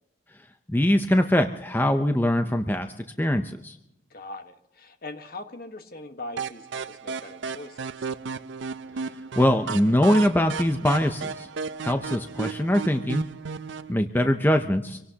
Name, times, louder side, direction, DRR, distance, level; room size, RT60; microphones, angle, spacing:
voice 1, 0.7-3.8 9.4-11.5 11.8-13.3 13.9-15.0, left 1 dB, 10° left, 6 dB, 0.6 m, -22 dB
voice 2, 4.1-7.9, left 2 dB, 50° left, 7 dB, 1.4 m, -41 dB
sound 1, 6.4-13.9, right 5 dB, 65° right, 0.5 m, -34 dB
25.5 x 17.0 x 2.9 m, 0.89 s
head